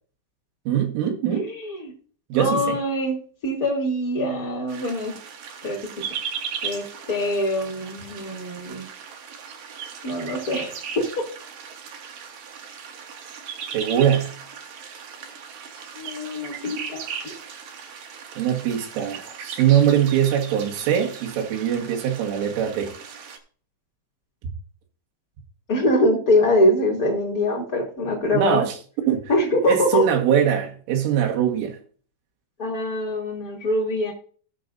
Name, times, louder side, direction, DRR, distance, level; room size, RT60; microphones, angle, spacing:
voice 1, 0.7-1.5 2.3-2.8 13.7-14.4 18.4-22.9 28.3-28.8 29.1-29.2 29.7-31.8, right 9 dB, 90° right, 4.1 m, -22 dB
voice 2, 1.3-1.9 2.3-5.1 5.6-6.0 6.6-8.9 10.0-11.3 15.9-17.3 25.7-28.7 29.3-30.1 32.6-34.1, left 1 dB, 25° left, 2.4 m, -24 dB
sound 1, 4.7-23.4, right 7 dB, 65° right, 2.3 m, -37 dB
18.0 x 6.6 x 2.6 m
omnidirectional pair, 5.5 m